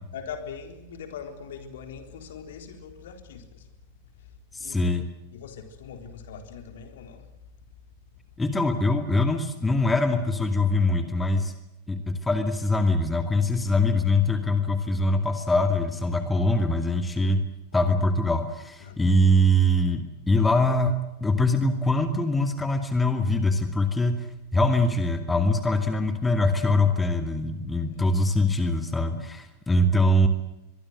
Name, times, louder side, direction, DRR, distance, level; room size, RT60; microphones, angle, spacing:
voice 1, 0.1-3.7 4.1-4.3 4.6-4.9 5.3-7.3 13.8-13.9 17.8-17.9 18.8-19.1 27.8-28.1, left 6 dB, 60° left, 7 dB, 4.0 m, -41 dB
voice 2, 4.5-5.0 8.4-11.5 11.9-17.4 17.7-24.3 24.5-30.3, left 1 dB, 10° left, 7 dB, 2.5 m, -23 dB
24.0 x 23.0 x 7.8 m, 0.91 s
figure-of-eight pair, 90°, 0 cm